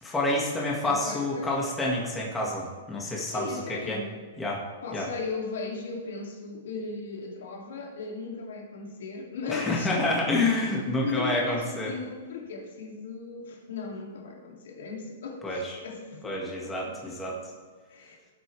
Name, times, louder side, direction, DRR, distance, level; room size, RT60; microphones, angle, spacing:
voice 1, 0.0-3.5 3.9-4.0 4.4-4.6 4.9-5.1 9.5-11.9 15.4-15.8 16.2-17.3, left 2 dB, 10° left, -3 dB, 1.8 m, -28 dB
voice 2, 0.8-1.5 3.3-4.1 4.8-9.9 11.0-17.4 17.9-18.2, left 4 dB, 75° left, 0 dB, 2.5 m, -37 dB
17.0 x 8.1 x 3.3 m, 1.5 s
hypercardioid pair, 155°, 0 cm